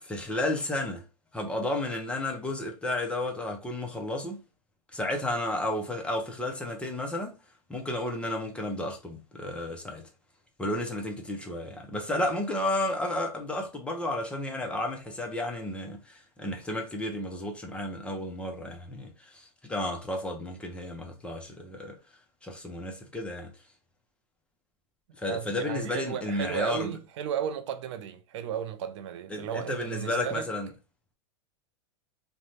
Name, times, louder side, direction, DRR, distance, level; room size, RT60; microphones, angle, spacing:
voice 1, 0.0-1.0 1.3-4.4 4.9-7.4 7.7-10.1 10.6-22.0 22.4-23.5 25.2-27.0 29.3-30.7, left 1 dB, 5° left, 0.5 m, -32 dB
voice 2, 25.2-30.5, right 9 dB, 70° right, 0.5 m, -34 dB
2.6 x 2.1 x 3.1 m
supercardioid pair, 145°, 15 cm